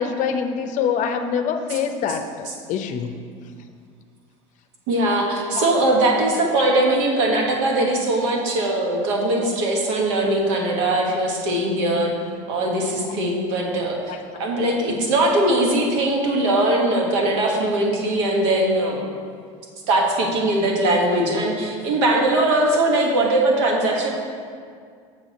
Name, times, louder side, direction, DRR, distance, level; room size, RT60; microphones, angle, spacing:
voice 1, 0.0-3.1 5.6-5.7 14.1-14.2, left 7 dB, 50° left, 7 dB, 0.6 m, -25 dB
voice 2, 4.9-12.1 12.5-19.0 19.9-24.1, right 1 dB, 75° right, 0 dB, 1.4 m, -21 dB
6.9 x 5.6 x 4.1 m, 2.2 s
hypercardioid pair, 85°, 16 cm